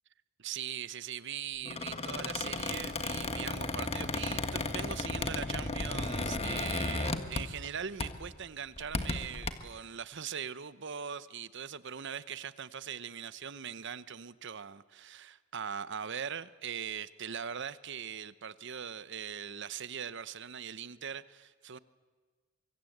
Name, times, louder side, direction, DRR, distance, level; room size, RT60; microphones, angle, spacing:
voice 1, 0.4-21.8, right 8 dB, 60° right, 0.9 m, -41 dB
Squeak, 1.6-7.7 8.0-8.3 8.8-9.5, left 2 dB, 30° left, 1.6 m, -34 dB
25.0 x 24.0 x 8.0 m
head